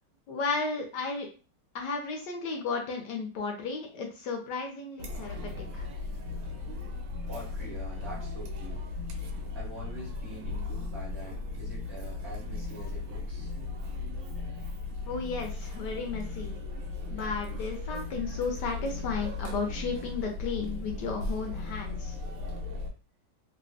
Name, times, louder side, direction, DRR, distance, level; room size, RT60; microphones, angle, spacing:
voice 1, 0.3-1.3 1.7-5.9 15.1-16.6 17.1-22.1, left 4 dB, 70° left, 2 dB, 1.1 m, -34 dB
Chatter, 5.0-22.9, left 3 dB, 75° right, 1.3 m, -36 dB
voice 2, 7.3-8.8 9.5-13.5, right 1 dB, 30° right, -5 dB, 0.5 m, -45 dB
3.2 x 2.1 x 2.4 m, 0.35 s
omnidirectional pair, 2.2 m